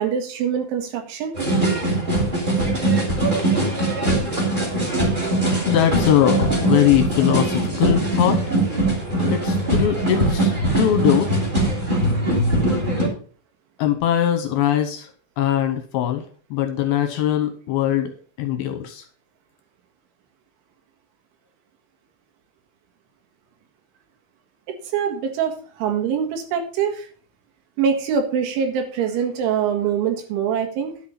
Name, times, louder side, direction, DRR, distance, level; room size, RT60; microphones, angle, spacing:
voice 1, 0.0-1.4 24.8-27.1 27.8-30.9, right 7 dB, 90° right, 5 dB, 4.2 m, -24 dB
sound 1, 1.3-13.1, right 1 dB, 15° right, 1.8 m, -21 dB
voice 2, 5.7-8.5 9.3-11.3 13.8-15.1 15.4-18.1 18.4-19.0, left 11 dB, 75° left, 7 dB, 2.4 m, -21 dB
10.5 x 6.8 x 5.7 m, 0.43 s
omnidirectional pair, 5.3 m